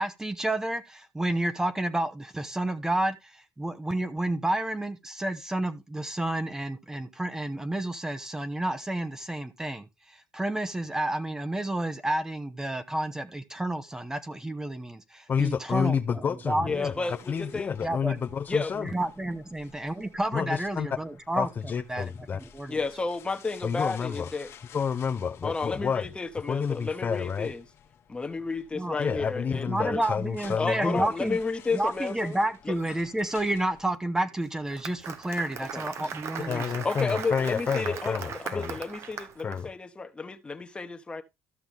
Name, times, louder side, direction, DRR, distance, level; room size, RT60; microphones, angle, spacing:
voice 1, 0.0-17.1 17.8-18.2 18.8-21.5 21.9-22.8 28.7-29.2 29.7-31.4 31.7-36.7, right 1 dB, 10° right, 0.8 m, -30 dB
voice 2, 15.3-18.9 20.3-20.9 21.4-22.4 23.6-24.3 24.7-26.1 26.5-27.5 29.0-31.0 36.5-38.8 39.4-39.7, left 6 dB, 35° left, 0.6 m, -30 dB
voice 3, 16.6-17.8 18.5-18.7 22.7-24.5 25.4-27.6 28.1-30.0 30.5-32.4 32.7-32.8 35.6-36.0 36.8-41.2, left 4 dB, 20° left, 1.2 m, -32 dB
sound 1, 16.7-33.8, left 8 dB, 60° left, 1.3 m, -53 dB
Applause, 34.4-39.6, right 7 dB, 60° right, 1.1 m, -38 dB
13.5 x 5.9 x 3.4 m
cardioid pair, 105°, 5 cm